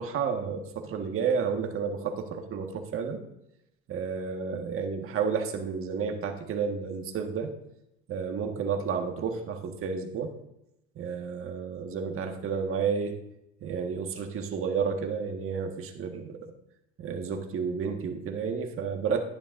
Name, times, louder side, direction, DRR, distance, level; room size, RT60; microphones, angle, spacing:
voice 1, 0.0-3.2 3.9-7.5 8.1-10.3 11.0-13.1 13.6-16.5 17.0-19.2, right 6 dB, 45° right, 4 dB, 1.5 m, -31 dB
11.0 x 10.0 x 2.6 m, 0.83 s
supercardioid pair, 95°, 31 cm